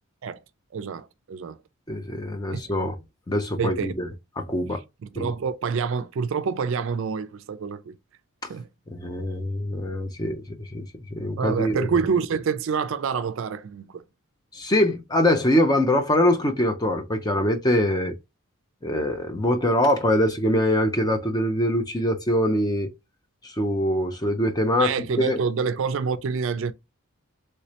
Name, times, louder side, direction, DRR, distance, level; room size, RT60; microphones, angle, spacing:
voice 1, 0.7-1.6 2.5-2.6 3.6-3.9 5.1-7.9 8.5-8.7 11.4-14.0 24.8-26.7, right 5 dB, 60° right, 0.3 m, -27 dB
voice 2, 1.9-3.0 3.3-4.1 4.4-4.8 5.2-5.3 8.9-10.8 11.1-11.9 14.5-18.1 18.8-22.9 23.4-24.9 25.2-25.4, left 1 dB, 15° left, 0.5 m, -23 dB
3.1 x 3.1 x 2.8 m
head